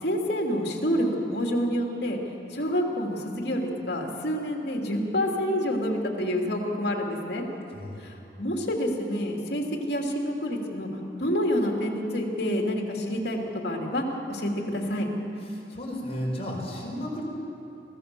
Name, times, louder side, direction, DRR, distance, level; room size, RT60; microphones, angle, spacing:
voice 1, 0.0-2.2 2.5-7.4 8.0-10.9 11.2-13.4 13.6-15.1, equal, 60° left, 0 dB, 3.0 m, -28 dB
voice 2, 7.7-8.1 15.5-17.2, equal, 35° left, -2 dB, 4.8 m, -33 dB
25.0 x 16.5 x 7.0 m, 2.9 s
head